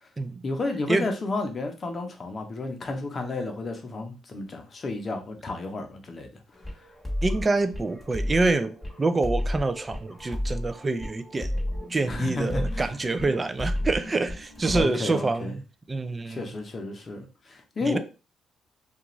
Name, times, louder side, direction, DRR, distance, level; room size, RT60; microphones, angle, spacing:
voice 1, 0.4-6.4 6.7-6.9 12.1-12.9 14.7-15.6 16.2-18.0, left 2 dB, 40° left, 0.7 m, -32 dB
sound 1, 6.6-14.8, left 1 dB, ahead, 1.1 m, -32 dB
voice 2, 7.2-11.5 11.9-15.6 15.9-16.5 17.8-18.0, right 3 dB, 25° right, 0.3 m, -26 dB
2.4 x 2.4 x 3.0 m
cardioid pair, 90°, 0 cm